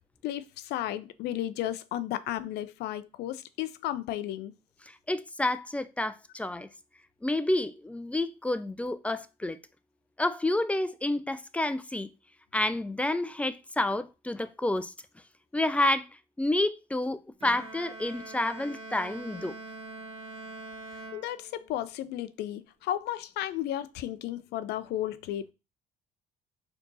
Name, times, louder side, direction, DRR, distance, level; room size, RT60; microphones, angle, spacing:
voice 1, 0.2-4.5 21.1-25.5, left 12 dB, 80° left, 0.5 m, -34 dB
voice 2, 5.1-6.7 7.2-9.6 10.2-12.1 12.5-14.9 15.5-16.0 16.4-19.6, left 1 dB, 10° left, 0.3 m, -29 dB
Bowed string instrument, 17.4-21.9, right 2 dB, 35° right, 1.2 m, -44 dB
4.5 x 2.8 x 3.9 m
cardioid pair, 110°, 17 cm